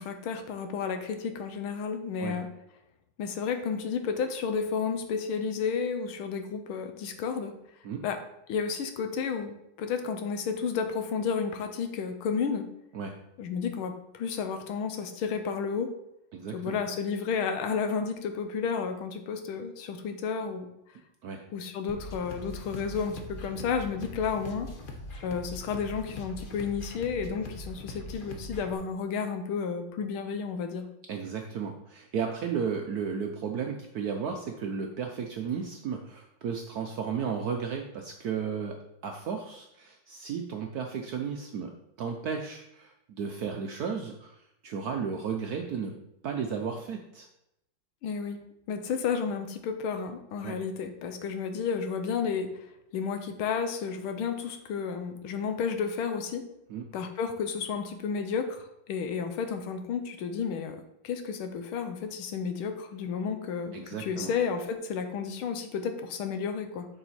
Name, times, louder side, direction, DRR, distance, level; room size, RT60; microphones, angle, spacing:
voice 1, 0.0-2.5 3.2-7.5 8.0-8.2 8.5-12.7 13.4-15.9 16.5-20.7 21.5-24.7 25.2-30.9 48.0-48.4 48.7-52.7 52.9-56.5 56.9-66.9, left 6 dB, 90° left, 7 dB, 1.7 m, -32 dB
voice 2, 16.3-16.8 21.2-21.4 31.1-41.7 42.0-46.0 46.2-47.3 50.4-50.6 56.7-56.9 63.7-64.3, right 6 dB, 70° right, 4 dB, 0.9 m, -34 dB
sound 1, 21.9-28.7, left 1 dB, 60° left, 0.5 m, -42 dB
7.0 x 5.5 x 4.2 m, 0.84 s
omnidirectional pair, 2.3 m